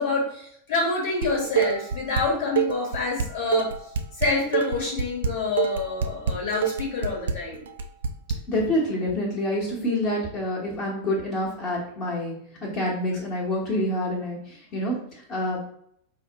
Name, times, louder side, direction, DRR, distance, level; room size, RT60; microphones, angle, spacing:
voice 1, 0.0-3.7 4.2-7.6, left 3 dB, 55° left, -2 dB, 1.1 m, -27 dB
Dishes pots and pans, 1.2-2.2 2.6-8.4, right 7 dB, 60° right, 0.3 m, -26 dB
voice 2, 8.5-12.3 12.6-15.0 15.3-15.6, left 1 dB, 35° left, -4 dB, 1.0 m, -27 dB
4.7 x 2.1 x 2.8 m, 0.68 s
figure-of-eight pair, 90°, 0 cm